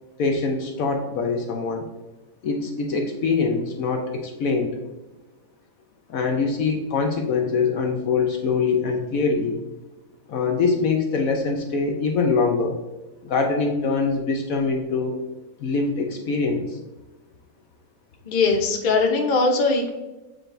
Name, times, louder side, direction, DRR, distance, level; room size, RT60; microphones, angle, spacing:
voice 1, 0.2-1.8 2.4-4.7 6.1-9.6 10.3-12.8 13.2-15.2 15.6-16.8, left 4 dB, 65° left, 3 dB, 1.1 m, -23 dB
voice 2, 18.2-19.9, left 3 dB, 40° left, 2 dB, 0.8 m, -20 dB
7.6 x 4.8 x 2.6 m, 1.1 s
omnidirectional pair, 1.7 m